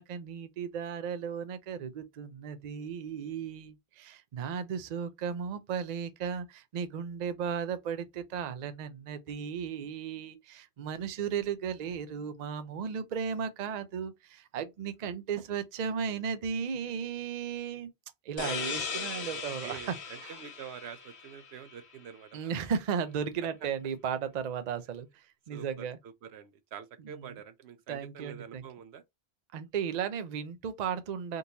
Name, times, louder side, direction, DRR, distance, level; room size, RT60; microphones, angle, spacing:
voice 1, 0.0-17.9 18.2-19.9 20.2-20.4 22.3-26.0 27.0-27.4 27.9-28.6 29.5-31.4, right 7 dB, 50° right, 0.5 m, -35 dB
sound 1, 18.4-21.8, left 6 dB, 80° left, 1.1 m, -38 dB
voice 2, 19.2-22.5 25.5-25.9 26.2-29.0, right 8 dB, 80° right, 0.9 m, -46 dB
3.8 x 2.6 x 2.8 m
omnidirectional pair, 1.1 m